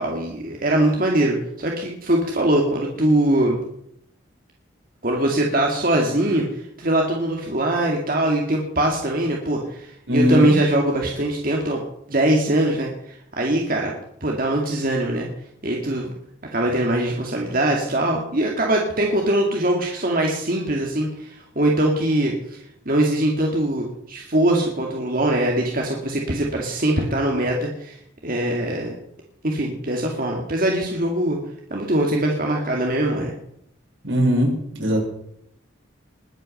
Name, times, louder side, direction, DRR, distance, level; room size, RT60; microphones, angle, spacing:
voice 1, 0.0-3.6 5.0-11.8 12.1-13.9 14.2-15.3 15.6-16.1 16.5-29.0 29.4-31.4 31.7-33.3, right 1 dB, 50° right, 0 dB, 2.3 m, -22 dB
voice 2, 10.1-10.5 34.0-35.0, equal, 80° right, -1 dB, 6.1 m, -19 dB
21.0 x 8.8 x 6.6 m, 0.74 s
head